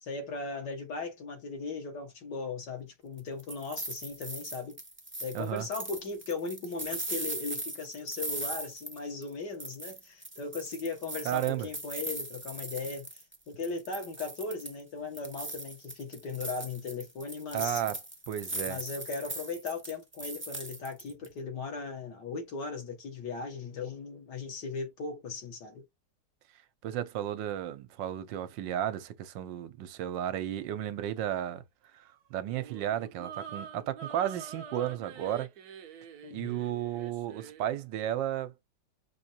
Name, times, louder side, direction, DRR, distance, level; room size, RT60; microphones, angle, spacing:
voice 1, 0.0-4.8 5.2-13.1 13.5-17.8 18.6-25.8 36.2-36.6, left 4 dB, 65° left, 2.1 m, -38 dB
sound 1, 3.2-9.3 9.6-13.4 13.6-14.8 15.1-21.3, right 2 dB, 15° right, 0.5 m, -39 dB
voice 2, 5.3-5.7 11.2-11.7 17.5-18.0 18.3-18.8 26.8-31.6 31.9-35.5 36.3-38.5, right 11 dB, 80° right, 1.4 m, -33 dB
sound 2, 32.4-37.7, right 7 dB, 65° right, 1.2 m, -46 dB
6.1 x 3.0 x 2.8 m
omnidirectional pair, 2.0 m